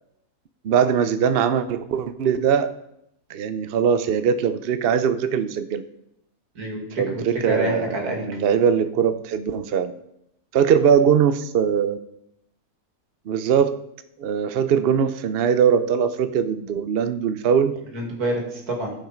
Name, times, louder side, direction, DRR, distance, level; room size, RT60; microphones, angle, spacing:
voice 1, 0.6-2.7 3.3-5.8 7.0-9.9 10.5-12.0 13.3-13.8 14.2-17.8, right 7 dB, 55° right, 11 dB, 0.7 m, -21 dB
voice 2, 6.5-8.4 17.9-18.9, right 1 dB, 90° right, 1 dB, 2.7 m, -27 dB
16.5 x 5.6 x 5.1 m, 0.80 s
omnidirectional pair, 1.6 m